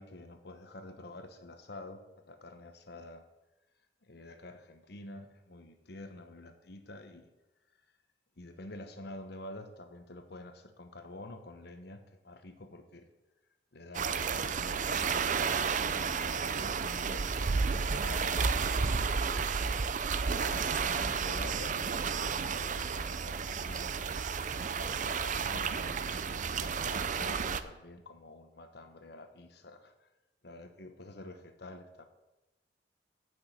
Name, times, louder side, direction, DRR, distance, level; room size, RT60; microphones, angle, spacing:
voice 1, 0.0-3.3 4.0-7.3 8.4-13.1 13.7-15.3 15.9-19.8 20.4-24.3 24.7-26.0 26.6-30.1 30.4-32.1, left 2 dB, 65° left, 8 dB, 1.2 m, -48 dB
sound 1, 13.9-27.6, right 5 dB, 45° right, 0.5 m, -32 dB
9.0 x 6.4 x 8.0 m, 1.0 s
head